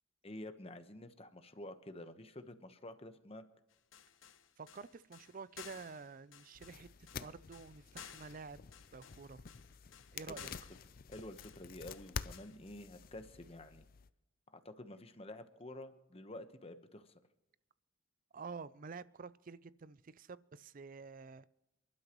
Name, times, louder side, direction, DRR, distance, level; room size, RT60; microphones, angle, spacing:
voice 1, 0.2-3.4 10.3-10.5 11.1-13.8 14.5-17.1, left 1 dB, 30° left, 1.0 m, -50 dB
sound 1, 3.7-12.6, left 8 dB, 70° left, 1.0 m, -56 dB
voice 2, 4.6-6.9 7.2-8.6 8.9-9.4 10.1-10.5 18.3-21.5, right 4 dB, 40° right, 0.4 m, -49 dB
sound 2, 6.6-14.1, left 6 dB, 45° left, 0.5 m, -49 dB
28.5 x 12.0 x 3.1 m
head